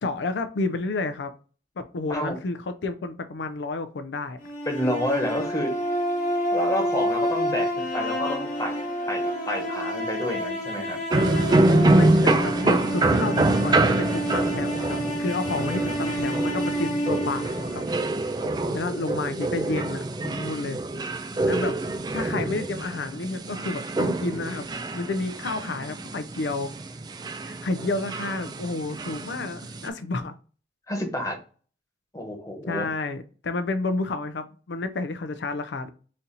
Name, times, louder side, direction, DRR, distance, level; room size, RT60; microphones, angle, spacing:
voice 1, 0.0-1.3 1.8-4.4 11.2-17.8 18.7-20.8 21.4-21.8 22.1-24.7 24.9-26.7 27.4-30.3 32.7-35.9, left 3 dB, 85° left, 0.5 m, -30 dB
sound 1, 4.4-18.5, equal, 45° left, 1.0 m, -29 dB
voice 2, 4.7-5.7 6.5-8.7 9.1-11.0 18.4-18.9 30.9-31.3 32.1-32.9, left 1 dB, 20° left, 1.1 m, -29 dB
sound 2, 11.1-29.9, right 2 dB, 25° right, 0.3 m, -26 dB
4.1 x 2.8 x 3.8 m
head